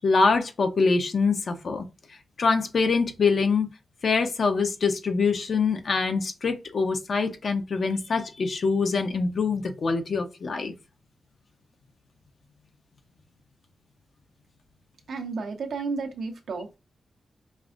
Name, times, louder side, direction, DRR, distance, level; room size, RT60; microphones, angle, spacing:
voice 1, 0.0-1.8 2.4-3.7 4.0-10.7, left 4 dB, 60° left, 0.7 m, -24 dB
voice 2, 15.1-16.8, right 4 dB, 80° right, 0.9 m, -32 dB
5.3 x 2.5 x 2.5 m
cardioid pair, 60°, 0 cm